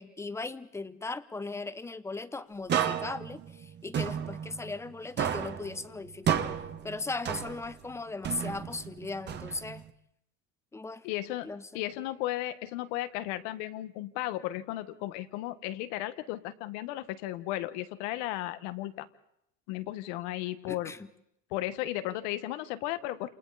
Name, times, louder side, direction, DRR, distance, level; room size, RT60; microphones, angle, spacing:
voice 1, 0.0-6.5 6.8-9.8 10.7-11.0 11.4-11.8 20.7-21.1, left 3 dB, 10° left, 13 dB, 0.8 m, -38 dB
sound 1, 2.7-4.9 5.2-7.9 8.2-9.9, right 9 dB, 30° right, 1.5 m, -32 dB
voice 2, 11.0-11.5 11.7-19.1 19.7-20.9 21.5-23.3, left 15 dB, 85° left, 11 dB, 1.8 m, -35 dB
29.5 x 28.0 x 4.3 m, 0.75 s
cardioid pair, 160°, 34 cm